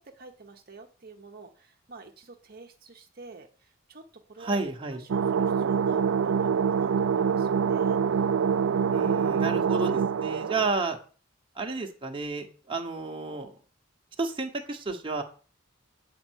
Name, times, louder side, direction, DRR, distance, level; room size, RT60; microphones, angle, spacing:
voice 1, 0.0-4.6 4.9-8.0 8.7-9.1 10.4-10.7, right 3 dB, 50° right, 3 dB, 0.9 m, -48 dB
voice 2, 4.4-5.0 8.9-11.0 11.5-13.5 14.2-15.2, right 3 dB, 25° right, 2 dB, 1.1 m, -31 dB
sound 1, 5.1-10.7, right 6 dB, 75° right, 0.4 m, -25 dB
8.6 x 4.6 x 6.3 m, 0.39 s
head